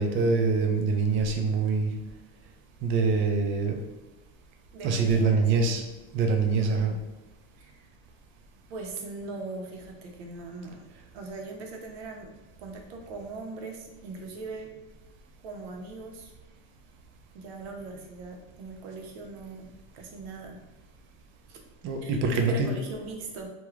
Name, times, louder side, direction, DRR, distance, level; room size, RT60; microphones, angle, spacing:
voice 1, 0.0-1.9 2.8-3.8 4.8-5.8 6.1-6.9 21.8-22.7, right 4 dB, 40° right, 3 dB, 0.4 m, -24 dB
voice 2, 4.7-5.9 6.6-7.0 7.6-7.9 8.7-10.9 11.1-12.3 12.6-14.7 15.4-16.3 17.3-20.6 21.5-21.6 22.0-23.5, right 3 dB, 75° right, 2 dB, 0.7 m, -40 dB
2.4 x 2.2 x 3.0 m, 1.1 s
supercardioid pair, 140°, 32 cm